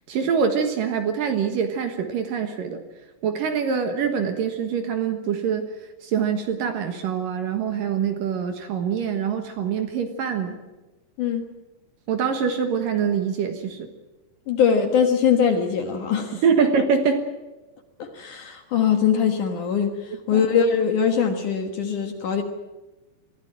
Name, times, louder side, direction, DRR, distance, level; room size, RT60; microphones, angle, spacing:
voice 1, 0.1-2.8 3.2-5.7 6.0-10.6 12.1-13.9 16.3-17.3 20.3-20.5, right 6 dB, 65° right, 6 dB, 2.8 m, -24 dB
voice 2, 14.5-16.4 18.0-19.9 20.3-22.4, left 7 dB, 60° left, 5 dB, 2.5 m, -22 dB
23.0 x 15.5 x 9.1 m, 1.1 s
omnidirectional pair, 4.9 m